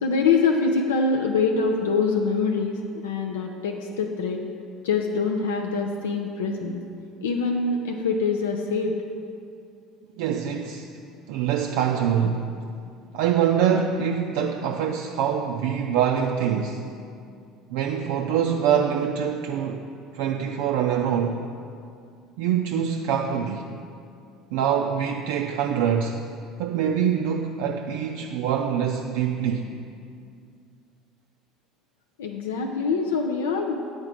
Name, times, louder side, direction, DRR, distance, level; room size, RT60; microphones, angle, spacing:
voice 1, 0.0-4.4 4.8-6.8 7.2-9.0 32.2-33.7, left 4 dB, 80° left, 2 dB, 0.4 m, -24 dB
voice 2, 10.2-10.9 11.3-12.4 13.1-16.8 17.7-21.5 22.4-23.7 24.5-26.2 26.6-29.7, right 8 dB, 65° right, 2 dB, 0.3 m, -24 dB
8.2 x 3.9 x 4.9 m, 2.4 s
hypercardioid pair, 65°, 0 cm